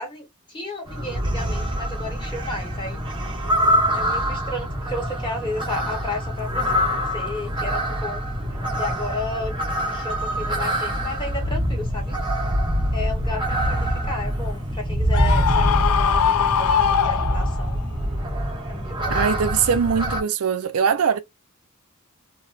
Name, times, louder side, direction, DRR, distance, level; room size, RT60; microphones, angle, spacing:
voice 1, 0.0-3.0 3.9-6.7 7.1-8.3 8.8-9.5 9.9-12.2 12.9-17.8 18.7-19.2, left 2 dB, 20° left, 1.2 m, -33 dB
sound 1, 0.9-20.2, equal, 20° right, 0.8 m, -25 dB
Screaming, 15.1-17.8, left 8 dB, 75° left, 0.4 m, -21 dB
voice 2, 19.1-21.2, right 6 dB, 75° right, 0.4 m, -21 dB
3.0 x 2.1 x 2.4 m
head